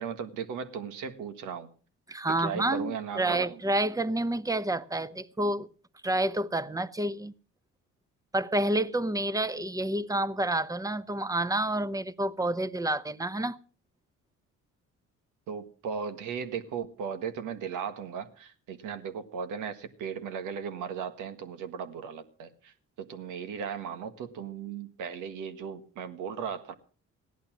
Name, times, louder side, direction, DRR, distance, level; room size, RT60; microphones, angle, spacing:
voice 1, 0.0-1.7 2.4-3.6 15.5-26.7, right 7 dB, 90° right, 1.7 m, -37 dB
voice 2, 2.1-5.7 6.0-7.3 8.3-13.6, right 1 dB, 10° right, 0.8 m, -29 dB
16.5 x 11.0 x 6.1 m
cardioid pair, 90°, 30 cm